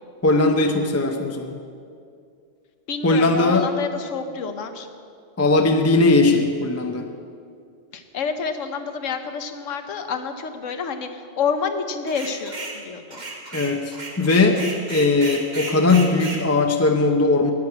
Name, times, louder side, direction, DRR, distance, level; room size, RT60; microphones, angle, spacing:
voice 1, 0.2-1.6 3.0-3.7 5.4-7.1 13.5-14.6 14.9-17.5, left 3 dB, 15° left, 4 dB, 0.7 m, -19 dB
voice 2, 2.9-4.9 7.9-13.2, left 5 dB, 90° left, 8 dB, 1.3 m, -28 dB
sound 1, 12.1-12.8 13.1-16.4, right 2 dB, 35° right, 1.7 m, -34 dB
9.7 x 9.7 x 8.6 m, 2.3 s
omnidirectional pair, 1.3 m